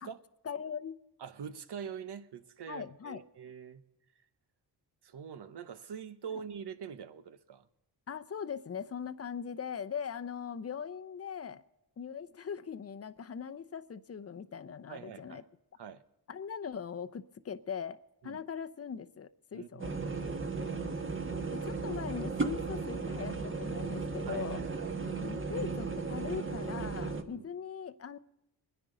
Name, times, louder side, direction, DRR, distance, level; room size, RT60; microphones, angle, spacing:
voice 1, 0.4-1.0 2.7-3.2 8.1-11.6 12.0-15.4 16.3-19.9 21.5-24.6 25.2-28.2, left 7 dB, 35° left, 0.7 m, -40 dB
voice 2, 1.2-3.8 5.0-7.7 14.9-15.5 15.8-16.0 18.2-18.4 19.5-20.6 24.3-24.9 27.3-27.4, right 7 dB, 70° right, 1.0 m, -44 dB
sound 1, 19.8-27.2, right 4 dB, 30° right, 1.3 m, -35 dB
23.0 x 10.0 x 3.9 m
cardioid pair, 70°, 41 cm